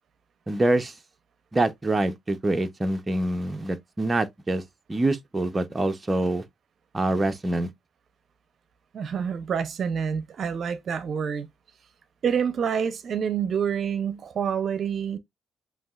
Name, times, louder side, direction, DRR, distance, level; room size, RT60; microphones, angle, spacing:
voice 1, 0.5-0.9 1.5-4.6 4.9-6.4 6.9-7.7, right 2 dB, 25° right, 0.7 m, -25 dB
voice 2, 8.9-11.5 12.2-15.2, right 7 dB, 55° right, 0.6 m, -27 dB
7.6 x 2.8 x 2.4 m
cardioid pair, 75°, 0 cm